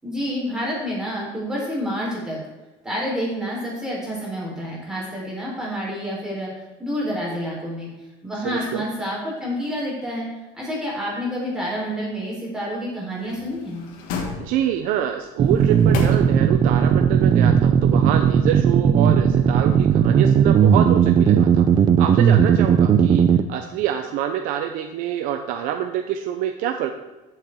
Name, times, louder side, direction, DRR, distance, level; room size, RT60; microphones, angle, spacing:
voice 1, 0.0-2.4 2.8-6.5 6.8-7.9 8.2-10.3 10.5-13.8, equal, 5° right, -5 dB, 4.3 m, -28 dB
voice 2, 8.4-8.8 14.4-21.7 22.0-26.9, right 10 dB, 65° right, 5 dB, 0.8 m, -26 dB
sound 1, 13.2-14.9 15.5-16.8 17.1-17.2, left 4 dB, 85° left, 2.1 m, -32 dB
sound 2, 15.4-23.4, right 7 dB, 30° right, 0.5 m, -16 dB
14.5 x 7.5 x 3.8 m, 1.1 s
cardioid pair, 165°, 15 cm